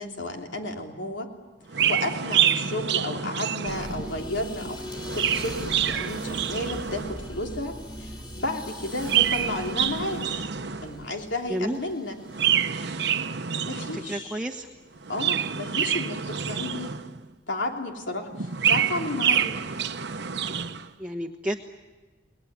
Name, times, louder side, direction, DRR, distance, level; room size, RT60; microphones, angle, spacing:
voice 1, 0.0-1.3 1.9-10.5 10.8-12.1 13.7-14.3 15.1-17.0 17.5-19.6, left 2 dB, 85° left, 2 dB, 3.3 m, -32 dB
Chirp tweet, 1.7-4.2 4.9-7.3 8.8-11.0 12.3-14.2 15.0-17.3 18.3-20.9, right 8 dB, 65° right, 1.0 m, -27 dB
sound 1, 3.6-14.7 15.0-15.4, equal, 25° left, 5.0 m, -41 dB
voice 2, 11.5-11.8 13.9-14.7 21.0-21.7, right 1 dB, 5° right, 1 dB, 1.2 m, -31 dB
29.5 x 20.0 x 9.5 m, 1.3 s
head